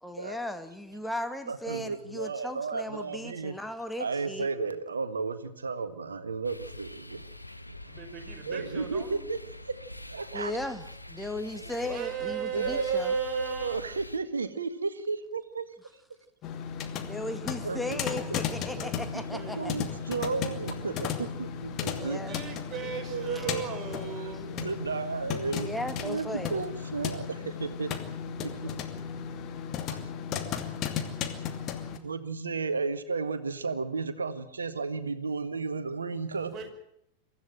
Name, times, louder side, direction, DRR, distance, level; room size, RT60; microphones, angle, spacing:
voice 1, 0.0-4.5 10.3-13.1 17.0-19.7 21.9-22.4 25.5-26.6, left 1 dB, 5° left, 8 dB, 2.1 m, -36 dB
voice 2, 1.5-3.5 4.0-7.2 8.4-9.4 9.7-9.8 10.1-10.6 12.5-15.7 17.6-18.4 19.1-22.2 22.8-23.8 24.5-25.7 26.0-27.9 28.4-28.7 29.9-30.0 32.0-36.5, right 4 dB, 75° right, 11 dB, 1.7 m, -33 dB
sound 1, 6.4-14.2, left 1 dB, 85° left, 1.3 m, -45 dB
voice 3, 7.8-9.2 11.5-13.8 18.6-19.1 19.3-19.8 21.9-24.7 36.4-36.7, right 8 dB, 25° right, 3 dB, 5.7 m, -38 dB
sound 2, 16.4-32.0, left 7 dB, 35° left, 2.5 m, -35 dB
24.0 x 15.5 x 8.9 m, 0.77 s
figure-of-eight pair, 90°, 0 cm